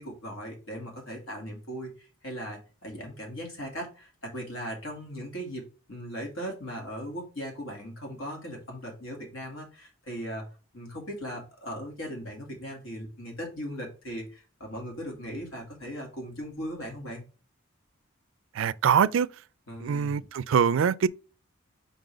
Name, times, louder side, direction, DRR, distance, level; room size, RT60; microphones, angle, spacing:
voice 1, 0.0-5.6 5.9-10.5 10.7-17.2 19.7-20.3, equal, 80° left, 2.6 m, -38 dB
voice 2, 18.6-19.3 19.8-21.1, right 7 dB, 70° right, 0.3 m, -23 dB
5.3 x 3.9 x 4.9 m
head